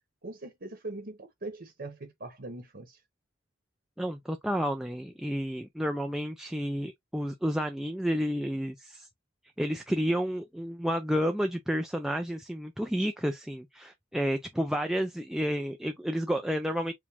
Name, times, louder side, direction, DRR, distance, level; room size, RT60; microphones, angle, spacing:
voice 1, 0.2-3.0, right 2 dB, 50° right, 1.0 m, -41 dB
voice 2, 4.0-9.1 9.6-16.9, equal, ahead, 0.3 m, -30 dB
4.8 x 2.2 x 3.4 m
head